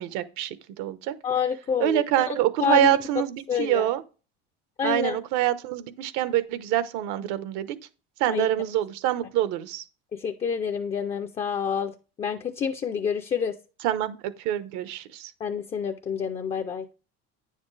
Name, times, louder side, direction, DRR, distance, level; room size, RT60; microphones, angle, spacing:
voice 1, 0.0-1.1 1.8-4.0 4.8-7.8 8.2-9.8 13.8-15.3, right 13 dB, 75° right, 1.0 m, -26 dB
voice 2, 1.2-2.4 2.6-3.0 3.5-3.9 4.8-5.2 8.3-8.5 10.1-13.5 15.4-16.9, left 7 dB, 20° left, 0.4 m, -28 dB
9.7 x 7.2 x 3.2 m
cardioid pair, 170°, 29 cm